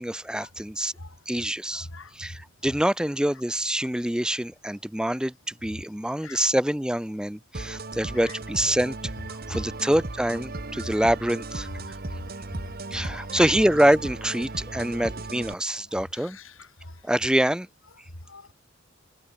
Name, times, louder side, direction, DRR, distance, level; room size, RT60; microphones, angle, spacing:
voice 1, 0.0-0.9 1.3-1.9 2.2-9.0 9.3-11.7 12.9-16.4 17.0-17.7, right 1 dB, 5° right, 0.5 m, -25 dB
voice 2, 1.7-2.4 6.2-6.4 8.2-8.4 9.5-9.6 10.8-11.0 12.1-12.2 12.5-13.5 16.1-17.1 18.2-18.5, left 2 dB, 80° left, 4.3 m, -40 dB
sound 1, 7.5-15.5, right 2 dB, 50° right, 1.4 m, -36 dB
head